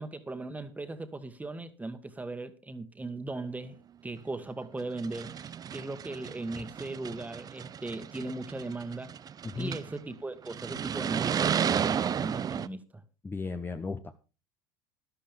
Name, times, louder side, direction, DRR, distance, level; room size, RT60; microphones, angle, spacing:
voice 1, 0.0-9.1 9.5-13.0, right 2 dB, 10° right, 1.7 m, -38 dB
sound 1, 4.2-4.3 4.9-10.0 10.5-12.7, right 8 dB, 30° right, 0.6 m, -33 dB
voice 2, 9.4-9.8 13.2-14.1, left 4 dB, 15° left, 0.9 m, -35 dB
13.5 x 11.5 x 3.6 m
hypercardioid pair, 80°, 12 cm